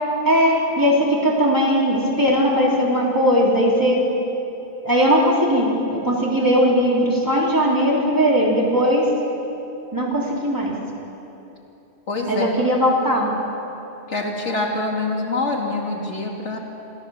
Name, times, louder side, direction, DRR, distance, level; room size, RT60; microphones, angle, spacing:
voice 1, 0.2-4.0 4.8-9.1 9.9-10.7 12.3-13.3, equal, 15° right, -4 dB, 3.7 m, -19 dB
voice 2, 12.1-12.6 14.1-16.6, left 2 dB, 80° left, 0 dB, 2.8 m, -25 dB
27.0 x 14.0 x 7.3 m, 3.0 s
omnidirectional pair, 1.2 m